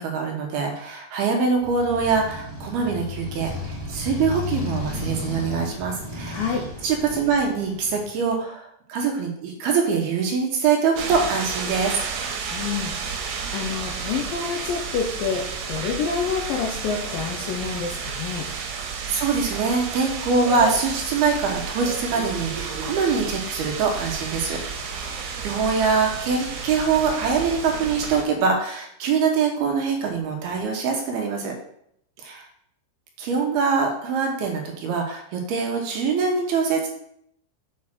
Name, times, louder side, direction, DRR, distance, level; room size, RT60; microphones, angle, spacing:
voice 1, 0.0-6.5 6.8-11.9 18.8-24.6 24.9-31.5 32.2-32.4 33.2-36.9, right 5 dB, 70° right, 2 dB, 2.9 m, -24 dB
Motorcycle, 1.6-8.3, left 2 dB, 10° right, 1.8 m, -33 dB
voice 2, 6.3-6.6 12.5-18.5, left 6 dB, 75° left, 0 dB, 2.1 m, -28 dB
sound 1, 11.0-28.2, right 5 dB, 85° right, 3.6 m, -32 dB
7.7 x 5.4 x 6.0 m, 0.70 s
omnidirectional pair, 5.2 m